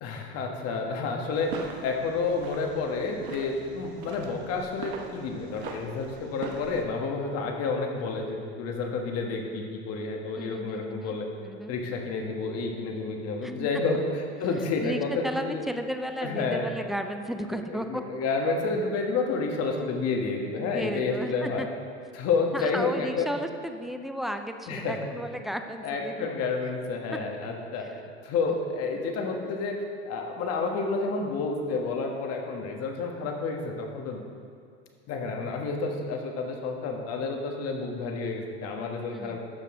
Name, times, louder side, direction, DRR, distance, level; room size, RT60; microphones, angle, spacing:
voice 1, 0.0-1.5 1.8-11.3 11.7-15.6 16.2-16.7 17.5-21.6 22.1-23.3 24.7-25.1 25.8-27.9 28.2-34.2 35.1-39.4, left 4 dB, 50° left, 2 dB, 1.5 m, -30 dB
sound 1, 1.3-6.8, right 5 dB, 75° right, 1.1 m, -41 dB
voice 2, 10.4-11.2 11.4-11.8 13.4-13.7 14.8-18.0 20.6-21.7 22.5-26.3 27.8-27.9 39.1-39.4, equal, ahead, 6 dB, 0.3 m, -34 dB
12.0 x 6.7 x 3.7 m, 2.3 s
supercardioid pair, 110°, 32 cm